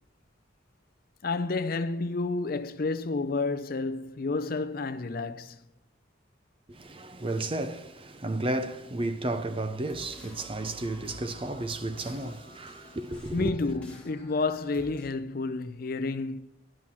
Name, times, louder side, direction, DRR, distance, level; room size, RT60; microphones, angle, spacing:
voice 1, 1.2-5.6 13.3-16.4, left 3 dB, 50° left, 0.5 m, -30 dB
voice 2, 6.7-13.6, right 2 dB, 30° right, 0.6 m, -33 dB
sound 1, 9.8-15.1, left 2 dB, 5° left, 1.9 m, -50 dB
11.5 x 6.1 x 7.2 m
head